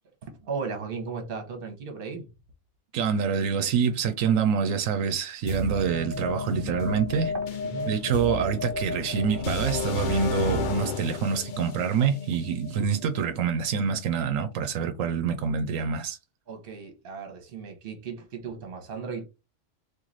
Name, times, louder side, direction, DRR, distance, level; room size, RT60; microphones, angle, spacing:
voice 1, 0.2-2.3 6.2-6.3 6.8-6.9 7.6-8.0 16.5-19.2, right 5 dB, 50° right, 1.1 m, -36 dB
voice 2, 2.9-7.3 7.9-16.2, right 6 dB, 85° right, 1.0 m, -26 dB
sound 1, 5.5-13.3, left 3 dB, 55° left, 0.6 m, -32 dB
3.1 x 2.6 x 3.9 m
omnidirectional pair, 1.3 m